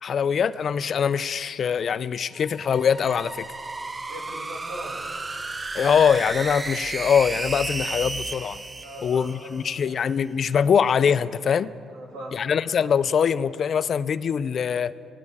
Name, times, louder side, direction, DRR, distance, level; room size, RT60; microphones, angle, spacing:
voice 1, 0.0-3.4 5.7-8.6 9.0-11.7 12.3-14.9, left 7 dB, 55° left, 16 dB, 0.3 m, -23 dB
sound 1, 2.4-9.8, right 3 dB, 25° right, 0.5 m, -33 dB
voice 2, 4.1-5.1 8.8-9.5 11.9-12.5, right 1 dB, 90° right, -1 dB, 2.5 m, -39 dB
20.0 x 9.4 x 3.6 m, 2.6 s
cardioid pair, 90°, 0 cm